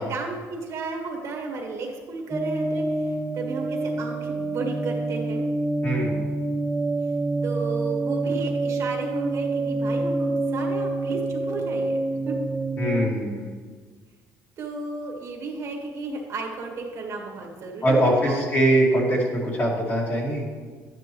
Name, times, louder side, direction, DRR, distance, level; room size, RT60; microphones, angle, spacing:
voice 1, 0.0-5.4 7.4-12.4 14.6-18.5, right 3 dB, 50° right, 1 dB, 1.8 m, -33 dB
sound 1, 2.3-13.1, right 2 dB, 15° right, 0.4 m, -27 dB
voice 2, 5.8-6.2 12.8-13.5 17.8-20.5, right 1 dB, 35° left, -3 dB, 2.5 m, -22 dB
11.5 x 9.5 x 3.1 m, 1.5 s
cardioid pair, 135°, 6 cm